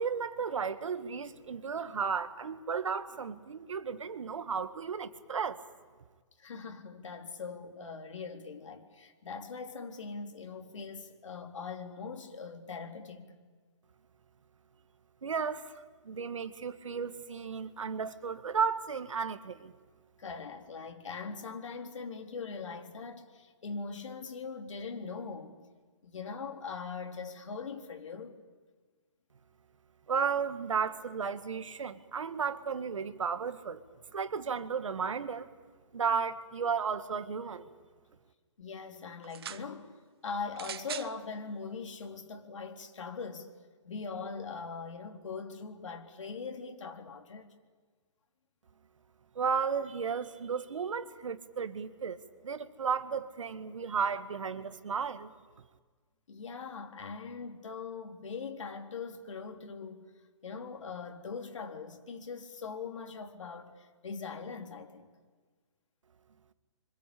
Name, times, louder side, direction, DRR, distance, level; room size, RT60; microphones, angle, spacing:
voice 1, 0.0-5.6 15.2-15.7 16.0-19.7 30.1-33.8 34.1-35.5 35.9-37.7 49.4-52.2 52.4-55.3, right 6 dB, 80° right, 2.0 m, -34 dB
voice 2, 6.4-13.3 20.2-25.6 26.0-28.3 38.6-40.0 40.2-43.5 43.8-47.5 56.3-60.1 60.4-65.1, left 5 dB, 75° left, 3.8 m, -41 dB
sound 1, 39.2-39.7 40.5-41.1 42.0-42.1, right 9 dB, 50° right, 1.3 m, -41 dB
27.0 x 25.5 x 8.6 m
hypercardioid pair, 160°, 16 cm